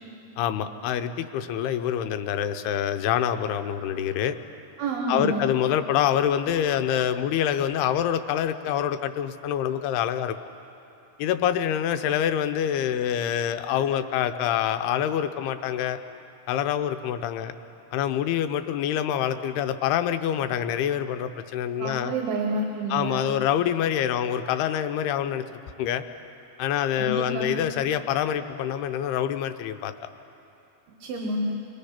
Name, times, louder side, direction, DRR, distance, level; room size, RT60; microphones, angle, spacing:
voice 1, 0.4-4.4 5.1-10.4 11.2-16.0 16.5-17.5 17.9-22.1 22.9-25.4 25.8-26.0 26.6-30.1, left 10 dB, 85° left, 9 dB, 2.8 m, -26 dB
voice 2, 4.8-5.5 21.8-23.4 27.0-27.6 31.0-31.5, right 2 dB, 75° right, 1 dB, 3.2 m, -29 dB
29.0 x 21.0 x 5.8 m, 2.9 s
omnidirectional pair, 4.6 m